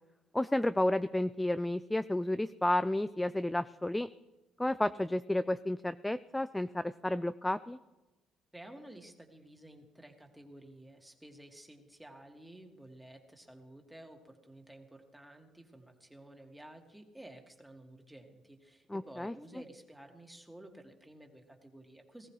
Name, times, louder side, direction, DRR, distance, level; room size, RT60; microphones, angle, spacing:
voice 1, 0.3-4.1 4.6-7.8 18.9-19.3, left 1 dB, 10° left, 13 dB, 0.4 m, -31 dB
voice 2, 8.5-22.3, right 1 dB, 5° right, 3 dB, 2.2 m, -53 dB
19.0 x 14.5 x 3.3 m, 1.1 s
supercardioid pair, 75°, 0 cm